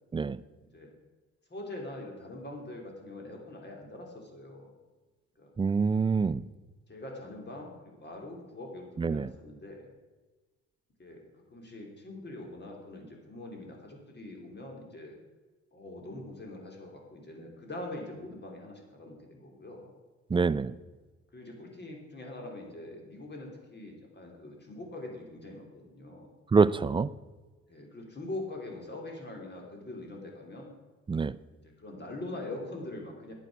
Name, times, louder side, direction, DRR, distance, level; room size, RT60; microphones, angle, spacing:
voice 1, 1.5-4.7 5.4-5.5 6.9-9.9 11.0-11.2 11.5-15.2 15.7-19.9 21.3-26.3 27.7-30.7 31.8-33.3, left 2 dB, 35° left, 1 dB, 3.3 m, -43 dB
voice 2, 5.6-6.4 9.0-9.3 20.3-20.7 26.5-27.1 31.1-31.3, right 4 dB, 15° right, 16 dB, 0.3 m, -25 dB
11.0 x 8.2 x 6.1 m, 1.2 s
cardioid pair, 90°, 30 cm